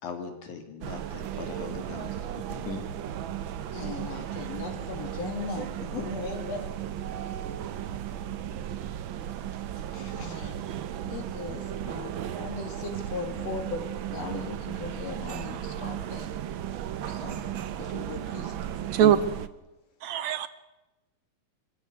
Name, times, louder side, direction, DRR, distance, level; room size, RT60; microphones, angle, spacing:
voice 1, 0.0-2.8, left 4 dB, 80° left, 4.2 m, -40 dB
sound 1, 0.8-19.5, right 10 dB, 90° right, 1.0 m, -35 dB
voice 2, 3.7-6.8 8.6-8.7 9.9-10.6 11.1-16.3 17.1-18.6 19.0-19.2, left 4 dB, 60° left, 3.8 m, -38 dB
voice 3, 20.0-20.5, right 11 dB, 75° right, 2.1 m, -21 dB
24.0 x 15.0 x 8.4 m
omnidirectional pair, 3.4 m